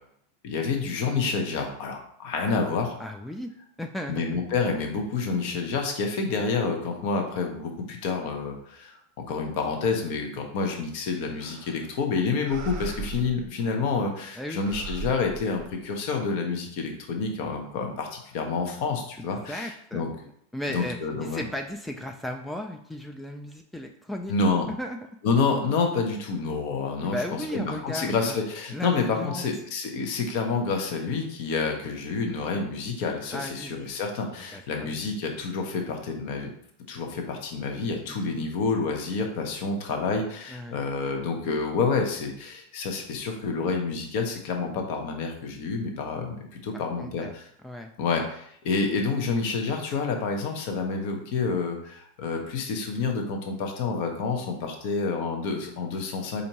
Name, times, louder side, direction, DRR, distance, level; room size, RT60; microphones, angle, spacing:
voice 1, 0.4-3.0 4.1-9.0 9.3-20.1 20.7-21.4 24.3-24.7 25.2-27.2 27.5-36.5 36.9-47.4 48.0-56.4, left 4 dB, 60° left, 4 dB, 0.8 m, -28 dB
voice 2, 3.0-3.5 3.8-4.4 14.4-14.6 19.5-24.3 24.7-25.0 27.0-28.4 28.7-29.4 33.3-33.7 34.5-35.0 38.1-38.2 40.5-40.8 46.7-47.3 47.6-47.9, left 1 dB, 5° left, 3 dB, 0.3 m, -35 dB
sound 1, 11.4-12.0 12.4-14.2 14.6-16.1, right 4 dB, 45° right, 0.8 m, -39 dB
4.3 x 2.6 x 2.9 m, 0.69 s
hypercardioid pair, 95°, 0 cm